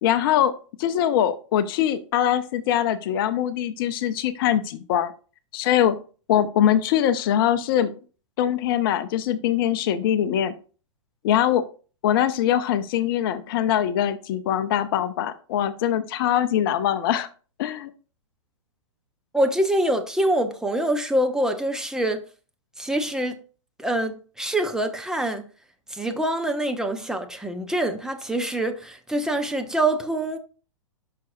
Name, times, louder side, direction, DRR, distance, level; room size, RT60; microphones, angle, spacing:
voice 1, 0.0-5.1 5.5-6.0 6.3-8.0 8.4-10.5 11.2-11.6 12.0-17.3 17.6-17.9, left 10 dB, 45° left, 0.6 m, -22 dB
voice 2, 19.3-22.2 22.8-23.4 23.8-25.5 25.9-30.4, right 1 dB, 5° right, 0.7 m, -25 dB
10.0 x 5.8 x 2.7 m
figure-of-eight pair, 110°, 17 cm